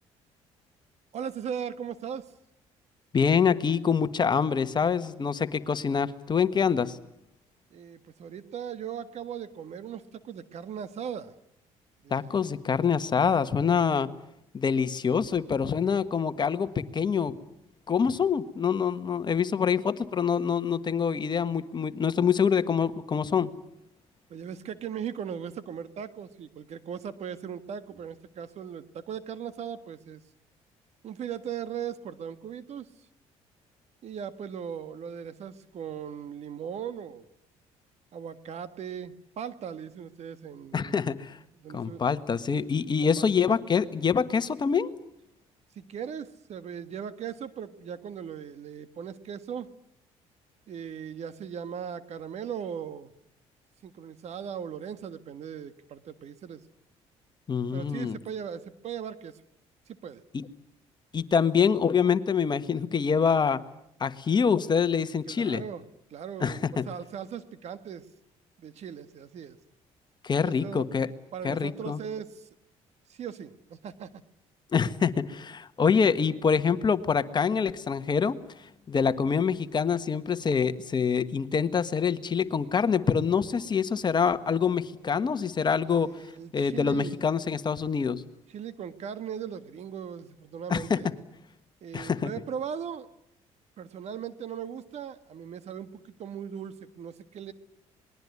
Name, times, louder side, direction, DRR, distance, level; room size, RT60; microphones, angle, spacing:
voice 1, 1.1-2.3 7.7-11.3 12.0-12.4 24.3-30.2 31.0-32.9 34.0-37.3 38.1-41.1 41.6-42.0 43.2-43.3 45.7-49.7 50.7-53.1 53.8-56.6 57.7-59.4 59.9-60.2 65.3-65.8 66.1-68.1 68.6-69.6 70.4-70.9 71.3-72.5 73.1-74.1 85.9-87.2 88.5-91.1 91.8-93.1 93.8-97.5, right 8 dB, 60° right, 12 dB, 1.7 m, -38 dB
voice 2, 3.1-7.0 12.1-14.1 14.5-17.3 17.9-23.5 40.7-41.4 41.7-44.9 57.5-58.2 60.3-60.4 61.1-63.6 64.0-65.6 66.4-66.8 70.2-71.1 71.4-72.0 74.7-78.4 78.9-86.1 86.5-88.2 90.7-91.1 91.9-92.3, left 6 dB, 35° left, 11 dB, 1.4 m, -25 dB
26.5 x 20.5 x 9.7 m, 0.77 s
cardioid pair, 85°, 13 cm